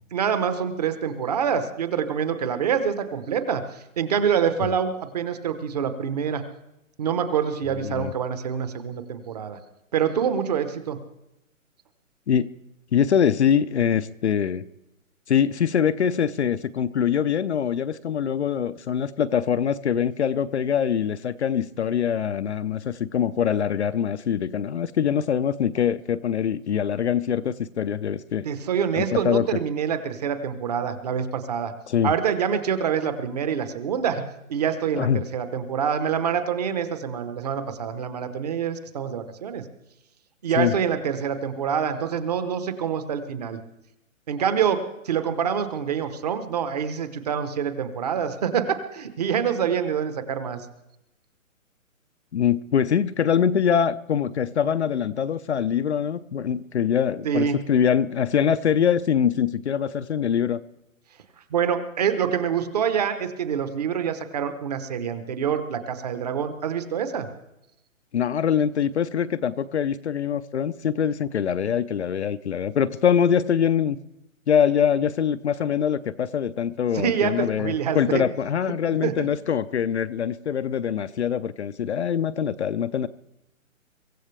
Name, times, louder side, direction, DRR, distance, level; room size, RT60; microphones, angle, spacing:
voice 1, 0.1-6.4 7.0-9.6 9.9-11.0 28.4-31.7 32.0-34.2 34.5-39.6 40.4-43.6 44.3-50.7 57.2-57.6 61.5-67.3 76.9-78.2 79.0-79.3, right 7 dB, 30° right, 10 dB, 1.0 m, -26 dB
voice 2, 12.9-14.6 15.3-28.5 29.0-29.5 31.9-32.1 34.9-35.2 40.6-40.8 52.3-60.6 68.1-74.0 74.5-83.1, left 8 dB, 55° left, 13 dB, 0.6 m, -23 dB
24.0 x 15.0 x 3.3 m, 0.88 s
hypercardioid pair, 165°, 41 cm